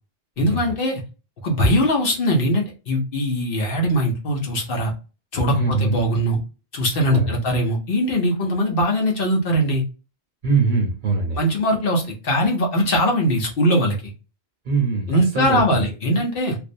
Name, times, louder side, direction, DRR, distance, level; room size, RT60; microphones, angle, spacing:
voice 1, 0.4-1.0 1.4-4.9 5.3-6.4 6.7-9.8 11.4-14.1 15.1-16.6, equal, 60° left, 1 dB, 0.9 m, -21 dB
voice 2, 5.5-6.0 7.1-7.4 10.4-11.4 14.7-15.8, right 4 dB, 50° right, 2 dB, 0.8 m, -22 dB
2.5 x 2.0 x 2.5 m, 0.32 s
omnidirectional pair, 1.1 m